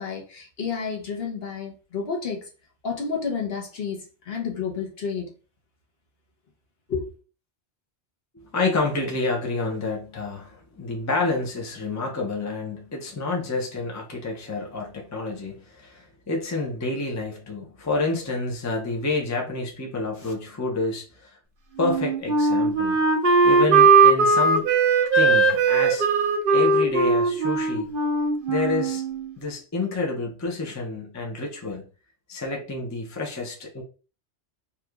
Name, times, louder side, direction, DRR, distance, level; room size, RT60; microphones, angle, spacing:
voice 1, 0.0-2.4 2.8-5.3 6.9-7.1 20.2-20.3, left 5 dB, 60° left, 1.1 m, -30 dB
voice 2, 8.3-21.4 21.8-24.7 25.1-26.1 26.5-27.9 28.5-29.1 29.4-31.8 32.3-33.8, left 3 dB, 20° left, 0.6 m, -29 dB
Wind instrument woodwind instrument, 21.8-29.3, right 4 dB, 55° right, 0.8 m, -19 dB
2.9 x 2.4 x 3.4 m
omnidirectional pair, 1.2 m